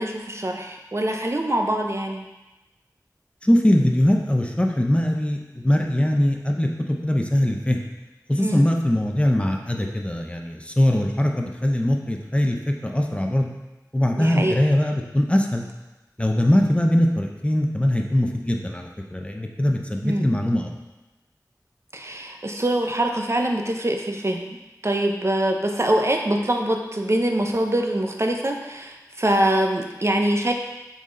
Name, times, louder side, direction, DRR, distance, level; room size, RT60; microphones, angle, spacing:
voice 1, 0.0-2.3 8.4-8.7 14.2-14.6 20.0-20.3 21.9-24.6 24.8-30.5, right 1 dB, 40° right, 3 dB, 0.7 m, -24 dB
voice 2, 3.4-7.8 8.3-12.6 12.8-13.5 13.9-15.6 16.2-20.7, left 1 dB, 15° left, 2 dB, 0.7 m, -21 dB
6.9 x 4.2 x 3.8 m, 1.1 s
wide cardioid pair, 55°, 7 cm